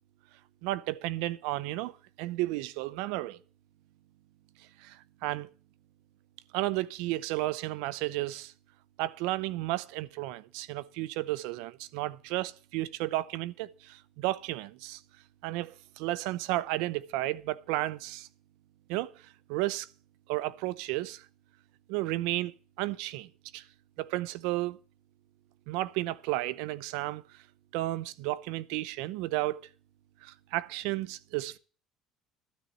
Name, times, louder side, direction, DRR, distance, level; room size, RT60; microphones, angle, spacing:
voice 1, 0.6-3.4 4.8-5.5 6.5-8.5 9.0-15.0 15.4-18.3 18.9-19.9 20.3-21.2 21.9-23.6 24.0-24.8 25.7-27.2 27.7-29.6 30.2-31.6, right 17 dB, 85° right, 0.7 m, -33 dB
12.5 x 6.3 x 8.0 m
cardioid pair, 115°, 0 cm